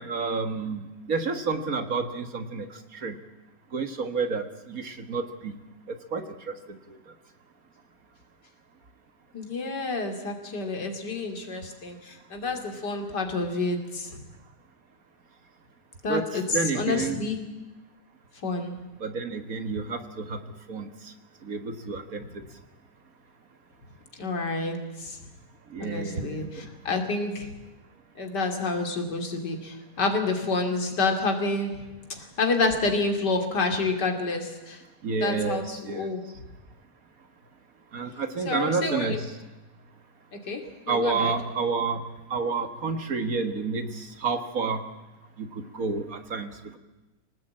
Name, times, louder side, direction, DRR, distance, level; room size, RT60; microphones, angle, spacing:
voice 1, 0.0-2.7 2.9-3.2 3.7-5.6 6.1-7.0 16.1-17.2 19.0-20.4 20.7-20.9 21.4-22.4 25.7-26.5 35.0-36.1 37.9-39.3 40.9-44.8 45.4-46.8, right 4 dB, 55° right, 8 dB, 1.9 m, -30 dB
voice 2, 9.3-14.2 16.0-17.4 18.4-18.7 24.2-25.2 25.8-27.5 28.2-31.8 32.2-34.8 35.2-36.2 38.4-39.2 40.5-41.3, left 3 dB, 75° left, 4 dB, 3.3 m, -29 dB
25.5 x 18.5 x 8.7 m, 1.1 s
omnidirectional pair, 1.8 m